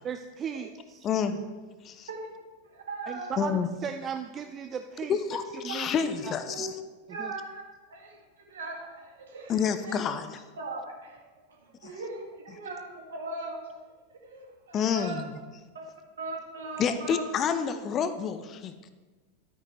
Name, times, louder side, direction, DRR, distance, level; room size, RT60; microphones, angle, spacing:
voice 1, 0.0-1.1 3.1-5.2 5.6-5.9 6.2-6.4 7.2-7.3, right 7 dB, 25° right, 7 dB, 0.4 m, -36 dB
voice 2, 2.6-3.4 5.4-5.8 6.4-6.7 7.1-7.6 7.9-10.0 10.6-11.2 11.5-13.8 14.2-15.2 15.7-15.8 16.2-17.2, right 3 dB, 65° right, 0 dB, 2.2 m, -39 dB
voice 3, 3.4-3.7 5.1-6.7 9.5-10.4 11.8-11.9 14.7-15.3 16.8-18.9, left 7 dB, 30° left, 10 dB, 0.7 m, -29 dB
12.0 x 9.4 x 3.2 m, 1.3 s
figure-of-eight pair, 90°, 0 cm